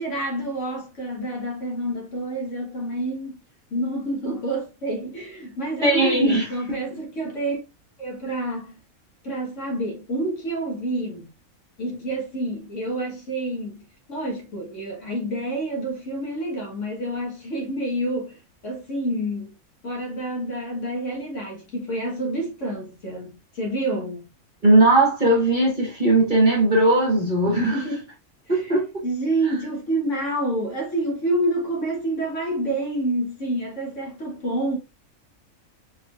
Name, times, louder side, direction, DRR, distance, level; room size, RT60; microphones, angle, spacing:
voice 1, 0.0-3.4 3.7-7.6 8.0-8.7 9.2-11.3 11.8-19.6 19.8-24.2 27.5-28.0 28.5-28.7 29.0-34.8, right 1 dB, 55° left, 1.7 m, -28 dB
voice 2, 5.8-6.8 24.6-27.8 28.5-29.0, right 2 dB, 35° right, 1.5 m, -19 dB
4.1 x 4.0 x 2.4 m
omnidirectional pair, 1.5 m